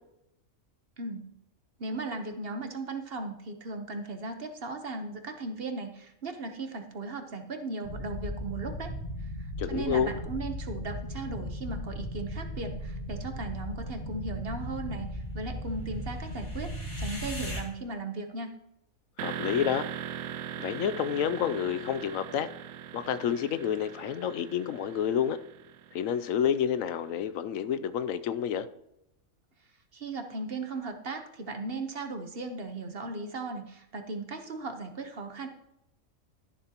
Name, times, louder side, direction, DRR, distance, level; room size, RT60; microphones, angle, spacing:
voice 1, 1.0-1.3 1.8-8.9 9.2-18.5 29.9-35.5, right 3 dB, 45° right, 6 dB, 1.2 m, -37 dB
sound 1, 7.8-17.6, equal, 40° left, 2.6 m, -37 dB
voice 2, 9.6-10.1 19.2-19.9 20.6-22.5 22.9-25.4 25.9-28.7, left 8 dB, 80° left, 13 dB, 1.0 m, -29 dB
sound 2, 19.2-27.0, right 9 dB, 75° right, 1.1 m, -40 dB
13.0 x 11.0 x 2.9 m, 0.83 s
omnidirectional pair, 1.4 m